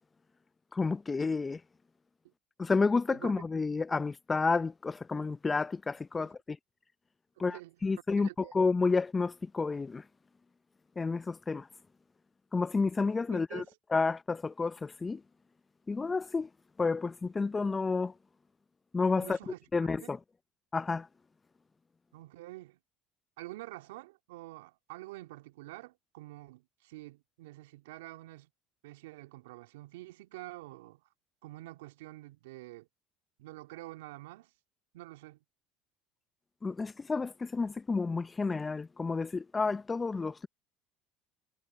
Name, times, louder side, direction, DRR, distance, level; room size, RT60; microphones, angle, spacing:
voice 1, 0.7-1.6 2.6-6.4 7.4-10.0 11.0-11.7 12.5-13.6 13.9-15.2 15.9-16.5 16.8-18.1 18.9-20.2 20.7-21.1 36.6-40.5, left 4 dB, 25° left, 0.7 m, -30 dB
voice 2, 7.4-7.8 8.2-8.6 13.3-13.7 19.2-19.6 20.0-20.1 22.1-22.8 23.4-28.5 28.8-31.0 31.4-32.9 33.4-34.5 34.9-35.4, right 18 dB, 80° right, 2.2 m, -47 dB
hypercardioid pair, 70°, 0 cm